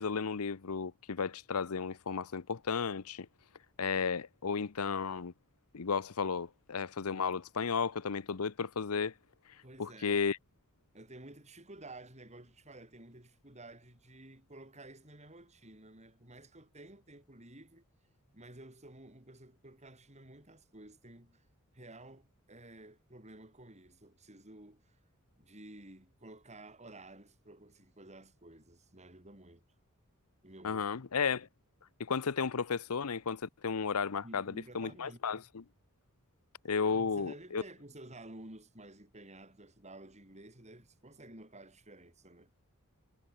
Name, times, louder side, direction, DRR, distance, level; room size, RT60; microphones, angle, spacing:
voice 1, 0.0-3.3 3.8-5.3 5.7-9.1 9.8-10.4 30.6-31.5 32.0-35.6 36.6-37.6, left 5 dB, 90° left, 0.8 m, -33 dB
voice 2, 9.6-10.2 10.9-17.8 18.3-21.4 21.7-25.0 25.4-29.6 30.4-31.0 34.2-35.2 36.9-42.5, right 2 dB, 30° right, 7.9 m, -52 dB
head